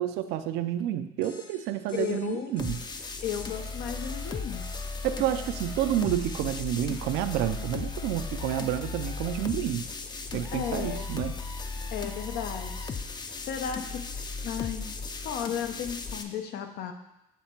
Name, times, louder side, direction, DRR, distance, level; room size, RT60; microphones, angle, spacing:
voice 1, 0.0-2.8 5.0-9.9 10.3-11.3, right 11 dB, 90° right, 10 dB, 0.4 m, -29 dB
sound 1, 1.2-8.4, left 3 dB, 50° left, 1.1 m, -52 dB
voice 2, 1.9-2.5 3.2-4.7 10.5-11.1 11.9-13.0 13.4-14.1 14.4-15.0 15.2-16.9, left 8 dB, 75° left, 7 dB, 0.7 m, -34 dB
sound 2, 2.6-16.2, left 4 dB, 25° left, 0.4 m, -36 dB
7.3 x 3.3 x 4.4 m, 0.91 s
cardioid pair, 110°, 17 cm